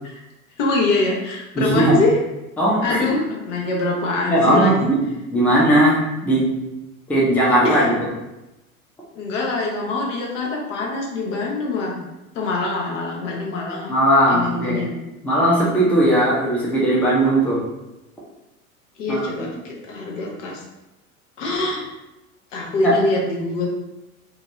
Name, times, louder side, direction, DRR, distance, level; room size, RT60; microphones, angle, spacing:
voice 1, 0.6-2.2 2.8-4.9 7.5-7.9 9.1-12.0 12.3-13.9 14.3-14.9 19.0-20.6 21.4-21.8 22.5-23.7, left 2 dB, 60° left, -1 dB, 0.9 m, -24 dB
voice 2, 1.6-2.0 2.6-3.0 4.3-5.0 5.3-6.5 7.1-7.9 13.9-14.9 15.2-17.6 19.1-19.3 22.8-23.0, right 1 dB, 5° left, -6 dB, 0.6 m, -18 dB
2.8 x 2.5 x 3.0 m, 0.97 s
figure-of-eight pair, 80°, 43 cm